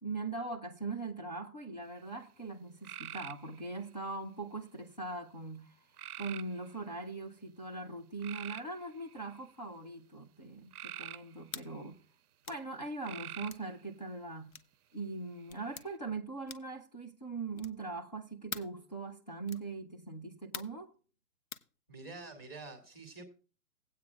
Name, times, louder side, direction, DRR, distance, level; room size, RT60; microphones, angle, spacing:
voice 1, 0.0-5.8 6.2-12.0 12.5-14.5 14.9-20.9, right 3 dB, 30° left, 0.6 m, -41 dB
sound 1, 2.8-3.9 6.0-6.8 8.2-9.5 10.7-11.9 13.0-13.7 15.4-15.9, right 10 dB, 70° right, 0.5 m, -46 dB
sound 2, 11.5-11.7 12.4-12.7 13.5-13.7 14.5-14.7 15.5-15.9 16.5-16.8 17.5-17.9 18.5-18.8 19.5-19.7 20.5-20.8 21.5-21.7, left 6 dB, 65° left, 0.9 m, -45 dB
voice 2, 21.9-23.2, right 3 dB, 10° left, 1.7 m, -47 dB
17.5 x 8.5 x 2.3 m
hypercardioid pair, 175°, 46 cm